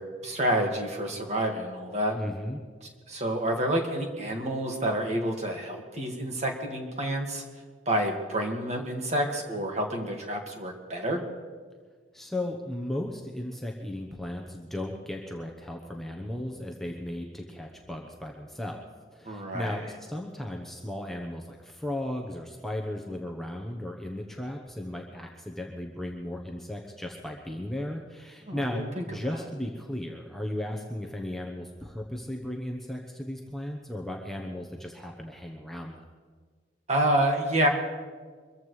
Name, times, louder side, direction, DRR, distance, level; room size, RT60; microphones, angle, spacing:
voice 1, 0.0-2.2 3.1-7.4 7.9-11.2 19.3-19.8 28.5-29.0 36.9-37.7, right 1 dB, 35° right, 2 dB, 1.9 m, -28 dB
voice 2, 2.1-2.6 12.1-18.9 19.1-36.0, left 1 dB, ahead, 0 dB, 0.9 m, -36 dB
24.0 x 14.5 x 3.2 m, 1.5 s
head